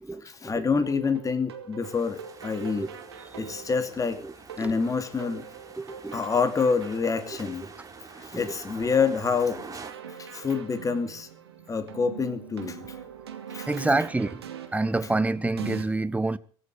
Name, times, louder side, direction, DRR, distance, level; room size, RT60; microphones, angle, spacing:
voice 1, 0.2-2.9 3.4-4.2 4.6-5.5 6.1-7.6 8.2-9.6 10.3-11.3 11.7-12.8 13.5-13.7, left 5 dB, 25° left, 2.7 m, -27 dB
sound 1, 0.8-15.8, right 8 dB, 85° right, 2.4 m, -43 dB
sound 2, 1.8-9.9, right 4 dB, 25° right, 3.6 m, -47 dB
voice 2, 5.8-6.2 8.3-8.5 13.7-14.4 14.7-16.4, right 2 dB, 10° right, 1.2 m, -27 dB
24.0 x 8.4 x 6.7 m
figure-of-eight pair, 65°, 13 cm